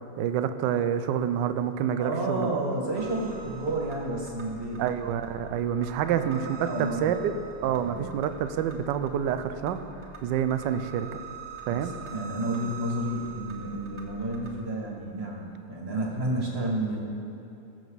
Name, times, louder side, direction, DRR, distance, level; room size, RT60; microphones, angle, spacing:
voice 1, 0.0-2.5 4.8-7.1 7.6-9.8 10.2-11.1 11.7-11.9, right 9 dB, 70° right, 9 dB, 1.2 m, -28 dB
voice 2, 2.0-4.8 6.1-7.3 7.6-8.1 11.7-17.0, right 1 dB, 30° right, -2 dB, 2.0 m, -31 dB
sound 1, 3.0-14.5, right 6 dB, 15° right, 1.6 m, -45 dB
20.5 x 7.9 x 4.0 m, 2.8 s
omnidirectional pair, 2.2 m